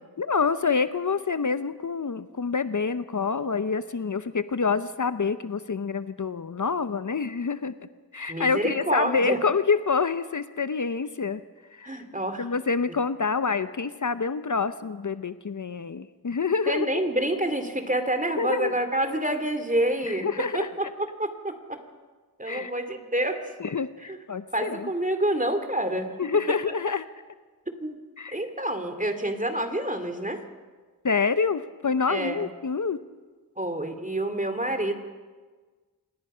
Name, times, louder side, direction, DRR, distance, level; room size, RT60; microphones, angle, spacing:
voice 1, 0.2-7.7 8.1-11.4 11.7-12.0 12.4-17.0 18.4-18.7 20.1-20.7 22.4-22.7 23.6-24.9 26.2-27.1 28.2-28.3 31.0-33.0, left 5 dB, 55° left, 12 dB, 0.8 m, -27 dB
voice 2, 8.3-9.4 11.8-12.5 16.7-20.3 20.5-21.8 22.4-23.4 24.0-24.2 24.5-26.1 27.8-28.0 28.3-30.4 32.1-32.5 33.6-34.9, right 1 dB, 20° right, 7 dB, 2.7 m, -28 dB
26.5 x 19.5 x 5.6 m, 1.4 s
wide cardioid pair, 55°, 36 cm